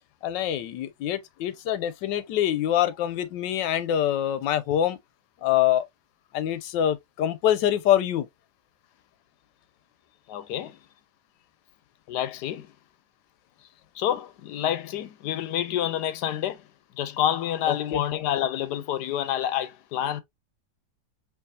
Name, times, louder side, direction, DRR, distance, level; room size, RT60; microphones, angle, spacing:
voice 1, 0.2-5.0 5.4-5.8 6.3-8.3 17.7-18.0, left 11 dB, 90° left, 1.3 m, -25 dB
voice 2, 10.3-10.8 12.1-12.7 13.9-16.6 17.0-20.2, left 11 dB, 70° left, 1.1 m, -28 dB
4.7 x 3.0 x 2.6 m
omnidirectional pair, 1.9 m